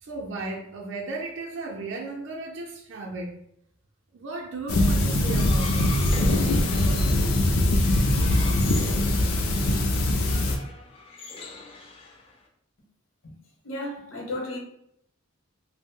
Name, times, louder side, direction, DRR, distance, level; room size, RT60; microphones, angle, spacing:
voice 1, 0.0-3.3 4.1-5.8, right 3 dB, 60° right, 0.5 m, -35 dB
sound 1, 4.7-10.6, left 1 dB, 90° left, 0.5 m, -22 dB
sound 2, 5.2-12.5, left 3 dB, 25° left, 0.3 m, -40 dB
voice 2, 13.6-14.6, left 1 dB, 70° left, 0.9 m, -33 dB
2.5 x 2.0 x 3.6 m
head